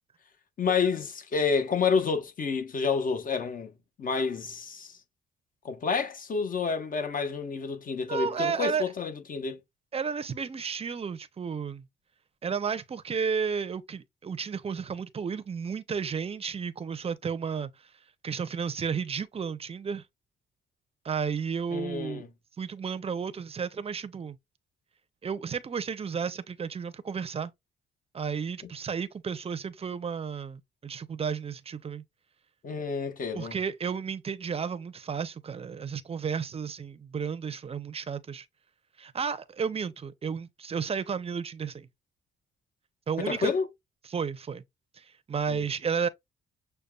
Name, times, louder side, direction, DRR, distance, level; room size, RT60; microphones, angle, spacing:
voice 1, 0.6-3.7 4.0-5.0 5.6-9.6 21.7-22.3 32.6-33.6 43.2-43.7 45.5-45.7, left 5 dB, 45° left, 1.0 m, -29 dB
voice 2, 8.1-8.9 9.9-11.8 12.4-17.7 18.2-20.0 21.0-22.2 22.6-24.4 25.2-27.5 28.1-32.0 33.3-38.5 39.0-41.9 43.1-43.5 44.1-44.6 45.0-46.1, right 6 dB, 30° right, 0.6 m, -32 dB
6.6 x 2.2 x 2.3 m
cardioid pair, 90°, 20 cm